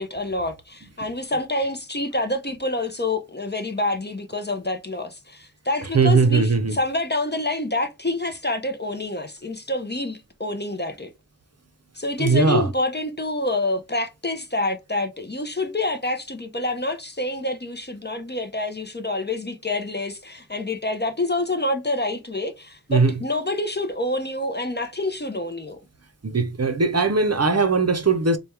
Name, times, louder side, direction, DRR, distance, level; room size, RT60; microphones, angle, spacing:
voice 1, 0.0-11.1 12.0-25.8, left 2 dB, 30° left, 0.7 m, -27 dB
voice 2, 5.9-6.8 12.2-12.7 22.9-23.2 26.2-28.4, right 4 dB, 40° right, 0.6 m, -19 dB
3.4 x 2.2 x 4.4 m
wide cardioid pair, 50°, 37 cm